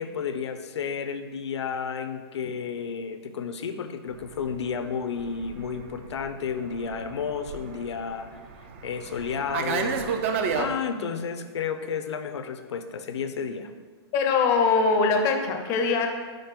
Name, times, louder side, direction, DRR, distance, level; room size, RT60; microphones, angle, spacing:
voice 1, 0.0-8.4 8.8-10.1 10.5-13.7, left 6 dB, 85° left, 9 dB, 0.7 m, -32 dB
Fixed-wing aircraft airplane, 4.2-10.7, right 6 dB, 30° right, 0.4 m, -32 dB
voice 2, 14.1-16.1, left 4 dB, 20° left, 4 dB, 0.6 m, -22 dB
5.3 x 5.2 x 5.8 m, 1.5 s
hypercardioid pair, 170°, 14 cm